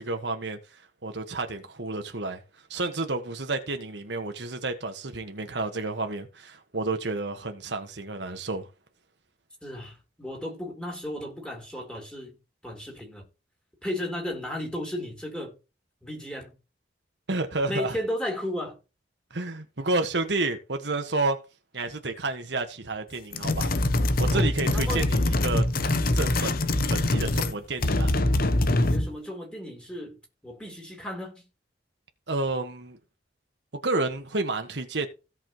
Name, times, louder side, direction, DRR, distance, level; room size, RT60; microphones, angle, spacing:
voice 1, 0.0-2.4 2.7-8.7 17.3-18.0 19.3-21.4 21.7-23.7 24.2-25.6 26.1-26.6 26.9-28.1 32.3-33.0 33.7-35.1, right 2 dB, 70° right, 1.6 m, -30 dB
voice 2, 9.6-12.4 12.6-13.2 13.8-15.5 16.0-16.5 17.6-18.8 24.3-25.1 28.9-31.4, left 1 dB, 5° left, 3.7 m, -34 dB
sound 1, 23.3-27.6 27.8-29.1, left 1 dB, 55° left, 0.9 m, -24 dB
16.5 x 5.7 x 3.1 m
head